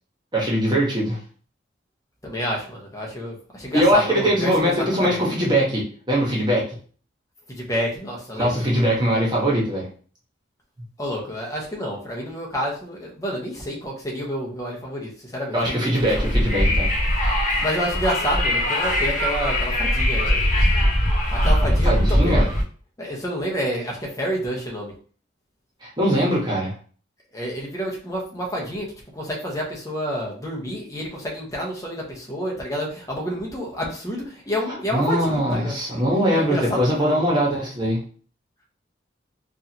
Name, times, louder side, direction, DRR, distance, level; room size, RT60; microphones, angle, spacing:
voice 1, 0.3-1.2 3.7-6.7 8.3-9.9 15.5-16.9 21.8-22.4 25.8-26.7 34.9-38.0, equal, 25° right, -4 dB, 1.3 m, -21 dB
voice 2, 2.2-5.2 7.5-8.6 11.0-16.3 17.6-20.4 21.3-22.5 23.0-24.9 27.3-35.8 36.3-37.2, equal, 20° left, -2 dB, 1.1 m, -29 dB
Wind, 16.0-22.6, equal, 40° left, 1.5 m, -21 dB
4.7 x 2.7 x 2.9 m, 0.42 s
head